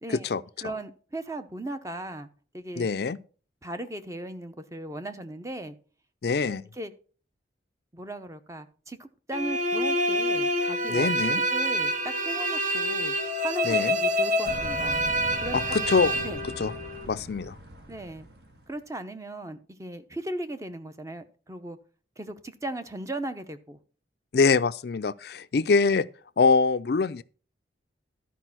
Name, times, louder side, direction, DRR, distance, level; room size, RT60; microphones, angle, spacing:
voice 1, 0.0-0.3 0.6-2.3 2.5-2.9 3.6-5.8 6.5-6.9 7.9-11.1 11.5-13.1 13.4-15.0 15.4-15.8 16.2-16.4 17.9-18.3 18.7-21.8 22.2-23.8, right 1 dB, 15° right, 0.7 m, -37 dB
voice 2, 2.8-3.2 6.2-6.6 10.9-11.4 13.6-14.0 15.5-16.1 16.6-16.7 17.1-17.6 24.3-26.1 26.4-27.2, left 4 dB, 55° left, 0.4 m, -24 dB
sound 1, 9.3-17.1, equal, 40° right, 0.9 m, -27 dB
sound 2, 14.4-18.8, right 1 dB, 60° right, 1.6 m, -41 dB
12.0 x 5.0 x 5.9 m
head